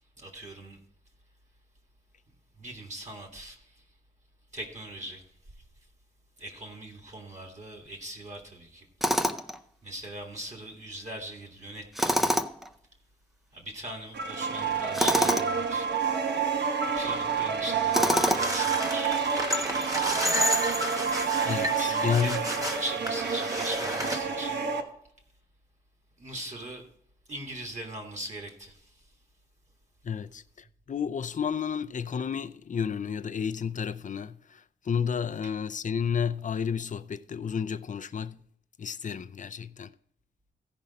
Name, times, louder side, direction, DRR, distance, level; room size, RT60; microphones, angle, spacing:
voice 1, 0.2-0.8 2.6-3.8 4.5-5.2 6.4-8.9 9.8-12.4 13.5-15.9 17.0-19.2 21.8-24.7 26.2-26.8 27.3-29.0 35.4-35.5, right 1 dB, 40° right, 1.9 m, -40 dB
Tools, 9.0-9.6 11.9-12.7 14.9-15.5 17.9-18.6, equal, ahead, 0.5 m, -25 dB
sound 1, 14.1-24.8, right 6 dB, 85° right, 1.1 m, -29 dB
sound 2, 18.2-24.2, equal, 20° right, 1.3 m, -31 dB
voice 2, 21.4-22.4 30.0-38.4 38.8-39.9, left 7 dB, 45° left, 0.4 m, -31 dB
15.5 x 5.2 x 4.1 m
wide cardioid pair, 130°, 17 cm